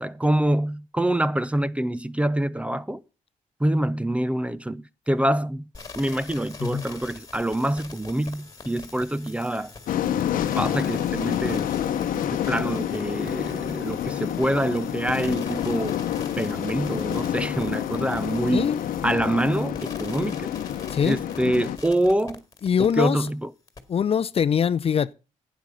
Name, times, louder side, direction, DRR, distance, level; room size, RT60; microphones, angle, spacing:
voice 1, 0.0-3.0 3.6-5.7 5.9-9.7 10.6-11.7 12.1-16.0 16.4-18.7 19.0-20.5 21.0-22.4 22.8-23.4, right 1 dB, 10° right, 0.6 m, -25 dB
sound 1, 5.7-23.3 23.7-23.8, left 4 dB, 25° left, 2.0 m, -43 dB
sound 2, 9.9-21.8, left 10 dB, 85° left, 0.9 m, -28 dB
voice 2, 20.9-21.2 22.6-23.3 23.9-25.1, left 7 dB, 45° left, 0.5 m, -23 dB
11.5 x 9.1 x 5.4 m
cardioid pair, 110°, 14 cm